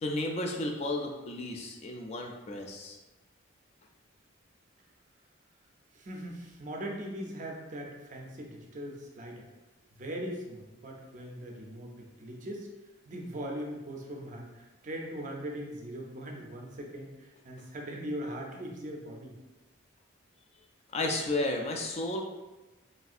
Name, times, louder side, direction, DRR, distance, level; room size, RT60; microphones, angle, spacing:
voice 1, 0.0-3.0 20.9-22.2, left 2 dB, 35° left, 2 dB, 0.3 m, -33 dB
voice 2, 5.9-9.4 10.0-12.7 13.1-19.4, equal, 40° right, 1 dB, 0.5 m, -40 dB
3.1 x 2.7 x 2.4 m, 1.1 s
head